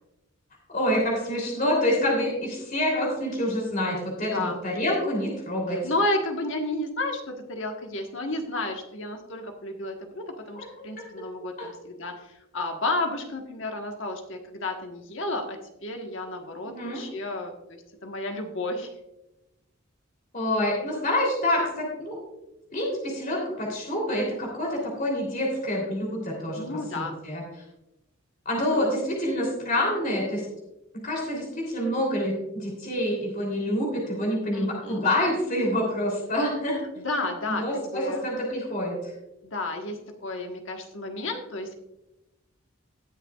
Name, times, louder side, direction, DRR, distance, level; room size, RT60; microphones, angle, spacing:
voice 1, 0.7-5.8 10.5-10.6 11.6-11.7 16.6-17.0 20.3-22.2 22.7-26.6 26.9-27.4 28.4-30.4 31.0-36.8 37.5-39.1, left 1 dB, 40° left, -2 dB, 3.3 m, -27 dB
voice 2, 5.7-18.9 26.5-27.2 28.7-28.8 34.5-35.0 37.0-38.3 39.4-41.8, left 2 dB, 60° left, 3 dB, 1.4 m, -32 dB
19.0 x 6.7 x 2.4 m, 0.93 s
head